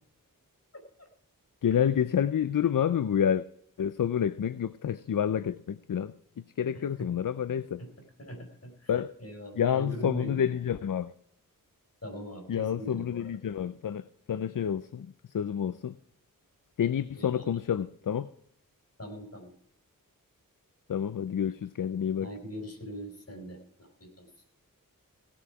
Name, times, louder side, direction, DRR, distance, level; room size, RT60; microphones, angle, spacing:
voice 1, 0.7-1.1 6.7-7.1 7.8-7.9 8.2-8.9 9.2-10.5 12.0-13.3 17.2-17.6 19.0-19.5 22.2-24.3, equal, 45° left, 4.1 m, -41 dB
voice 2, 1.6-3.4 3.8-6.1 6.6-7.8 8.9-9.1 9.6-11.1 12.5-16.0 16.8-18.3 20.9-22.3, left 8 dB, 65° left, 0.5 m, -29 dB
17.0 x 7.1 x 4.8 m
wide cardioid pair, 60°, 35 cm